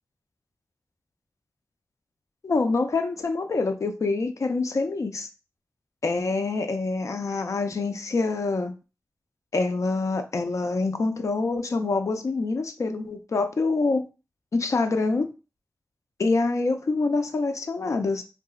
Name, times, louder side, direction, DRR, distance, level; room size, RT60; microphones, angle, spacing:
voice 1, 2.4-5.3 6.0-8.7 9.5-14.0 14.5-15.3 16.2-18.2, left 3 dB, 70° left, 0.5 m, -26 dB
3.7 x 2.8 x 2.4 m
wide cardioid pair, 60°, 6 cm